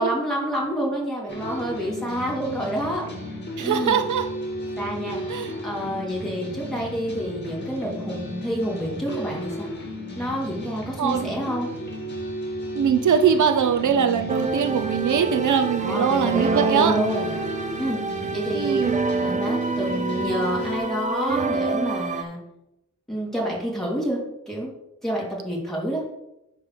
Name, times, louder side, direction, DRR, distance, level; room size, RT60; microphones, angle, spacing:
voice 1, 0.0-3.0 3.3-4.0 4.8-5.2 5.6-9.7 10.1-11.7 15.8-17.3 17.8-18.0 18.3-18.8 19.2-22.4 23.1-24.2 24.5-24.7 25.0-26.0, equal, ahead, -5 dB, 2.6 m, -28 dB
sound 1, 1.3-20.8, equal, 35° left, 1.9 m, -34 dB
voice 2, 3.6-4.2 5.3-5.5 11.0-11.3 12.8-17.0 18.5-19.0, right 7 dB, 75° right, 6 dB, 0.6 m, -22 dB
sound 2, 14.3-22.2, right 3 dB, 25° right, 0.5 m, -27 dB
9.7 x 3.3 x 6.6 m, 0.88 s
wide cardioid pair, 155°, 31 cm